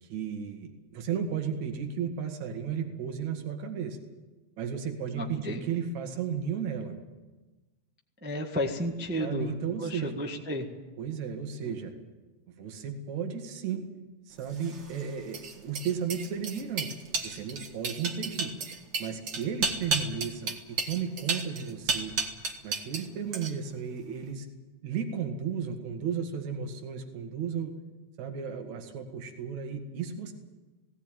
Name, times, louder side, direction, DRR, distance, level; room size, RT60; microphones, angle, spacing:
voice 1, 0.0-4.0 4.6-7.0 9.2-10.1 11.0-11.9 12.5-13.8 14.3-16.9 17.2-18.5 19.0-22.2 22.6-24.5 24.8-27.7 28.2-30.3, right 7 dB, 75° right, 5 dB, 3.1 m, -34 dB
voice 2, 5.1-5.6 8.2-9.5 9.8-10.7, equal, 10° right, 2 dB, 0.6 m, -32 dB
sound 1, 14.5-23.1 23.3-23.8, right 4 dB, 45° right, 2.1 m, -33 dB
18.0 x 17.0 x 9.1 m, 1.2 s
omnidirectional pair, 3.3 m